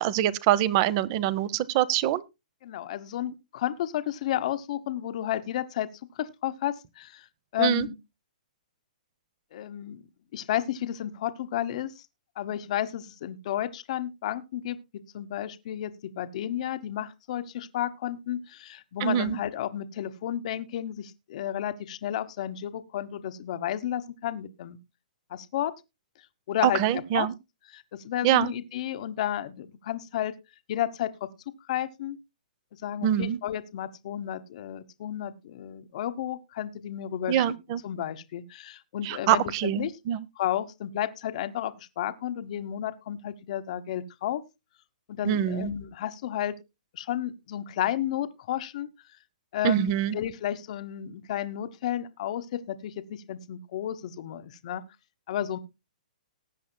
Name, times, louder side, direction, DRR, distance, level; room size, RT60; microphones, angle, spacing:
voice 1, 0.0-2.2 7.6-7.9 19.0-19.4 26.6-27.3 28.2-28.5 33.0-33.4 37.3-37.8 39.0-40.2 45.3-45.7 49.6-50.2, right 11 dB, 35° right, 0.7 m, -24 dB
voice 2, 2.6-5.9 6.2-7.2 7.5-8.0 9.5-10.0 10.3-12.0 12.4-14.8 15.1-24.8 25.3-25.7 26.5-27.3 27.7-30.3 30.7-31.1 31.7-32.2 32.8-37.4 37.8-39.9 40.4-44.4 45.1-46.5 46.9-48.9 49.5-54.8 55.3-55.6, left 11 dB, 50° left, 1.0 m, -32 dB
19.5 x 8.4 x 2.2 m
hypercardioid pair, 145°, 5 cm